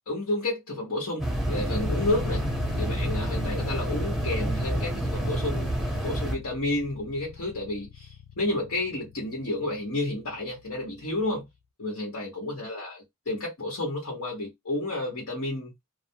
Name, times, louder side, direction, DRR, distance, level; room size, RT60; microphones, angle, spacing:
voice 1, 0.1-2.4 2.8-5.8 6.0-11.5 11.8-15.7, left 2 dB, 80° left, 1.1 m, -31 dB
sound 1, 1.2-6.3, right 1 dB, ahead, 0.7 m, -28 dB
sound 2, 1.8-11.5, left 7 dB, 60° left, 0.4 m, -41 dB
2.2 x 2.2 x 2.7 m
head